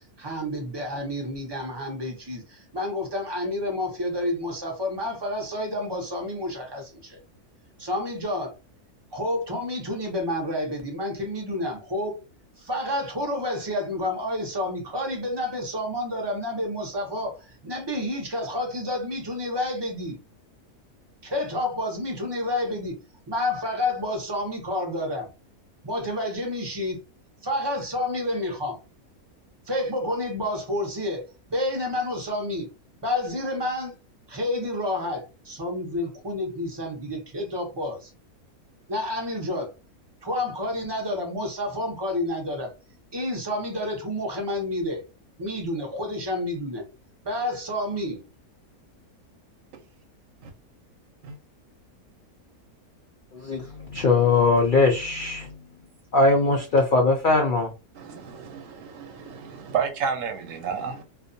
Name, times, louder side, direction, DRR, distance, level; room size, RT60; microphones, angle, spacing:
voice 1, 0.2-7.2 7.8-8.5 9.1-12.2 12.6-20.2 21.2-23.0 23.3-25.3 25.8-27.0 27.4-28.8 29.7-32.7 33.0-33.9 34.3-38.1 38.9-39.7 40.2-42.7 43.1-45.0 45.4-46.8 47.2-48.2, left 1 dB, 30° right, 0.4 m, -29 dB
voice 2, 53.3-55.6 56.1-57.7, left 3 dB, 80° left, 0.4 m, -21 dB
voice 3, 57.9-61.0, right 6 dB, 70° right, 0.9 m, -31 dB
2.5 x 2.2 x 2.6 m
omnidirectional pair, 1.5 m